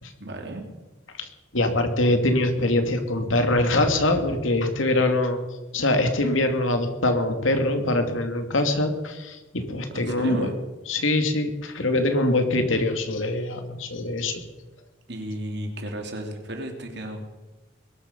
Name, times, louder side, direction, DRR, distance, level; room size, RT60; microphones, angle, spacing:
voice 1, 0.2-0.6 9.9-10.5 15.1-17.3, right 1 dB, 60° right, 4 dB, 3.2 m, -33 dB
voice 2, 1.1-5.4 5.7-10.5 10.9-14.4, left 2 dB, 85° left, 6 dB, 2.5 m, -23 dB
21.5 x 12.5 x 5.4 m, 1.2 s
head